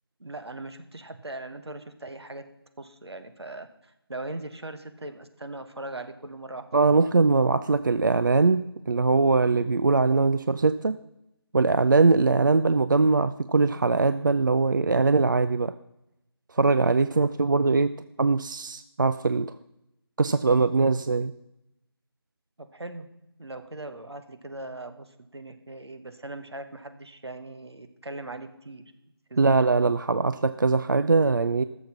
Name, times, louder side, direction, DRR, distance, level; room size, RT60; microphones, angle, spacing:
voice 1, 0.2-2.5 2.8-7.0 22.6-23.1 23.4-28.9 29.3-29.8, right 2 dB, 80° right, 8 dB, 1.6 m, -40 dB
voice 2, 6.7-11.0 11.5-15.7 16.5-17.9 18.2-19.5 20.2-21.3 29.4-31.6, right 3 dB, 50° right, 12 dB, 0.4 m, -22 dB
14.5 x 7.2 x 5.9 m, 0.85 s
figure-of-eight pair, 165°, 14 cm